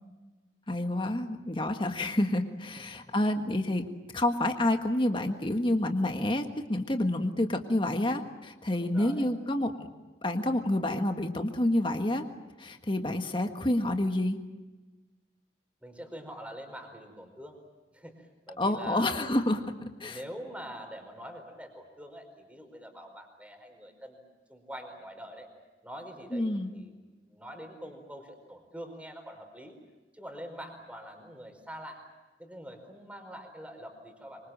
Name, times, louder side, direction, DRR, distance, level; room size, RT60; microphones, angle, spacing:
voice 1, 0.7-3.8 4.1-9.9 10.2-12.2 12.6-14.4 18.6-19.7 20.0-20.2 26.3-26.7, left 1 dB, 30° left, 5 dB, 1.7 m, -28 dB
voice 2, 8.8-9.3 15.8-17.6 17.9-19.2 20.0-24.2 24.5-25.5 25.8-29.8 30.1-32.0 32.4-34.5, equal, 10° right, 5 dB, 4.7 m, -45 dB
25.5 x 25.0 x 7.5 m, 1.2 s
head